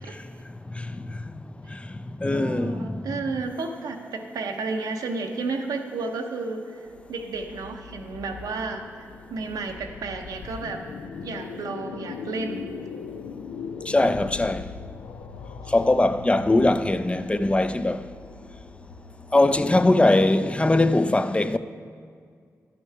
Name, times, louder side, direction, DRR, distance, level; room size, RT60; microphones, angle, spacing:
voice 1, 0.8-1.1 1.7-1.8 2.2-3.0 13.9-14.7 15.7-18.0 19.3-21.6, left 2 dB, 20° left, 0.4 m, -21 dB
voice 2, 2.3-8.8 9.3-10.8 11.2-12.7, right 3 dB, 80° right, 0.7 m, -32 dB
sound 1, 6.9-20.1, left 6 dB, 90° left, 0.4 m, -40 dB
11.5 x 5.8 x 4.6 m
supercardioid pair, 45°, 6 cm